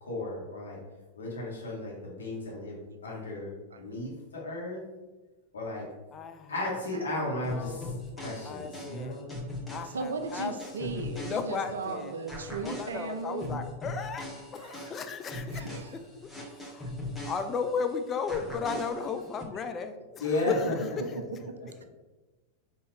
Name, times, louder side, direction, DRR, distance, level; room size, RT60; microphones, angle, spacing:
voice 1, 0.0-0.8 1.1-3.5 3.8-4.8 5.5-5.9 6.5-9.3 20.2-20.8 21.1-21.2, left 2 dB, 70° left, -3 dB, 1.4 m, -34 dB
voice 2, 2.9-3.4 3.7-3.8 8.8-9.0 9.8-13.7 14.6-15.0 15.5-16.0 18.7-18.8 20.5-20.6 21.0-21.8, right 4 dB, 70° right, 7 dB, 0.5 m, -37 dB
voice 3, 6.1-6.7 7.5-8.0 8.4-9.2 9.7-10.5 10.8-12.2 12.6-14.3 14.5-15.7 16.2-16.9 17.2-20.8, left 5 dB, 25° left, 7 dB, 0.4 m, -35 dB
sound 1, 7.4-11.9 12.3-17.9 18.3-19.4, left 1 dB, 5° left, 1.0 m, -40 dB
5.3 x 2.9 x 3.2 m, 1.2 s
figure-of-eight pair, 90°, 0 cm